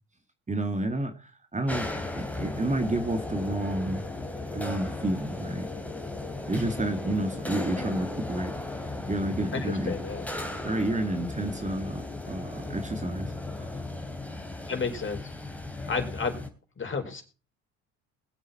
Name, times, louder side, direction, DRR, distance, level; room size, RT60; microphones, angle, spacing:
voice 1, 0.5-1.9 2.1-4.0 4.5-5.7 6.5-8.5 9.1-9.9 10.6-13.3 13.6-13.7, right 1 dB, 20° right, 7 dB, 1.9 m, -30 dB
sound 1, 1.7-16.5, left 2 dB, 5° left, 3.3 m, -36 dB
voice 2, 9.5-10.2 14.7-15.2 15.9-16.4 16.8-17.2, left 5 dB, 35° left, 4 dB, 4.7 m, -31 dB
21.5 x 8.2 x 4.2 m, 0.35 s
hypercardioid pair, 65°, 36 cm